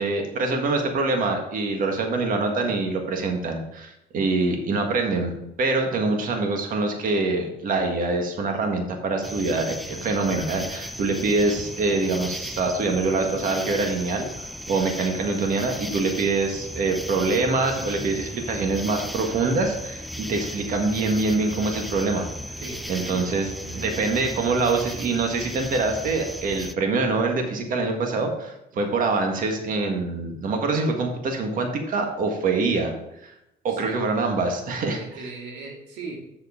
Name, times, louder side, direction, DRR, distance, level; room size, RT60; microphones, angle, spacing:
voice 1, 0.0-5.3 5.6-22.6 22.9-23.5 23.7-32.9 33.2-33.3 33.6-35.0, right 3 dB, 55° right, 3 dB, 1.7 m, -25 dB
sound 1, 9.2-26.7, equal, ahead, 0.4 m, -36 dB
voice 2, 22.6-24.1 28.7-28.9 33.7-34.1 34.8-36.2, right 3 dB, 85° right, 0 dB, 2.2 m, -39 dB
7.3 x 6.6 x 4.9 m, 0.86 s
cardioid pair, 110°, 17 cm